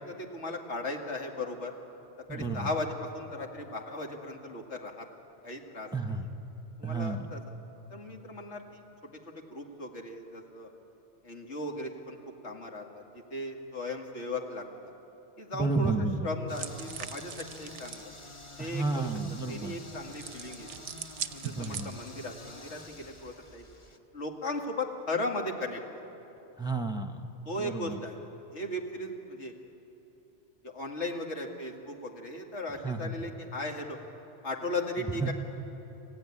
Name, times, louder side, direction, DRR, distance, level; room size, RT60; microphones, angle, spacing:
voice 1, 0.1-1.7 2.3-5.1 5.4-6.2 6.8-7.4 7.9-8.8 9.3-10.7 11.2-12.2 12.4-14.9 15.4-18.1 18.6-19.1 19.5-20.9 21.3-23.6 24.1-26.0 27.5-28.2 28.5-29.5 30.6-34.0 34.4-35.3, left 2 dB, 80° left, 1 dB, 2.4 m, -37 dB
voice 2, 2.3-2.7 5.9-6.3 6.8-7.3 15.5-16.3 18.6-19.8 21.4-22.0 26.6-27.3 27.6-28.0 32.8-33.1 35.2-35.3, right 3 dB, 5° right, 4 dB, 0.9 m, -31 dB
sound 1, 16.5-24.0, left 2 dB, 25° left, 1.2 m, -48 dB
sound 2, 16.5-18.1 20.1-22.3, right 9 dB, 90° right, 1.0 m, -41 dB
28.0 x 15.0 x 9.9 m, 3.0 s
omnidirectional pair, 1.2 m